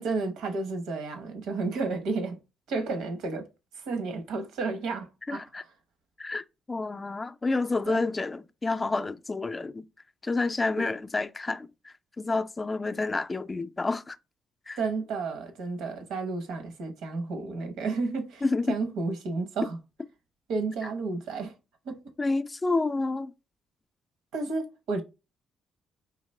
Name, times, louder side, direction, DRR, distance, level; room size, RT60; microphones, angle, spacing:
voice 1, 0.0-2.4 2.7-3.5 3.7-5.4 7.9-8.0 10.8-10.9 14.8-19.8 20.5-21.5 21.8-22.0 24.3-25.0, right 3 dB, 85° right, 0.9 m, -32 dB
voice 2, 5.3-5.6 6.2-9.8 10.2-14.2 14.7-14.8 18.4-18.8 22.2-23.3, left 3 dB, 25° left, 0.4 m, -29 dB
4.0 x 2.9 x 3.2 m
cardioid pair, 90°, 0 cm